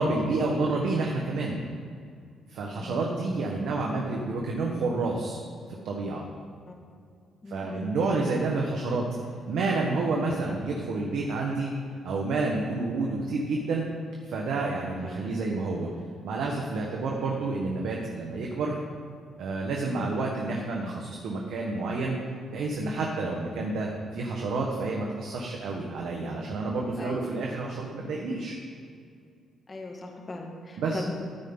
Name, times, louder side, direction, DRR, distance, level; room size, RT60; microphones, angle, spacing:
voice 1, 0.0-1.6 2.5-5.4 5.8-6.2 7.5-9.1 9.5-11.7 12.0-13.9 14.2-15.9 16.2-18.8 19.4-22.2 22.5-28.6 30.8-31.0, right 3 dB, 75° right, -1 dB, 1.4 m, -29 dB
voice 2, 2.7-3.1 6.7-6.8 7.4-7.9 15.0-15.2 19.8-20.2 27.0-27.2 29.7-31.1, left 2 dB, 30° left, 1 dB, 2.0 m, -39 dB
13.5 x 9.6 x 4.0 m, 2.3 s
cardioid pair, 90°, 0 cm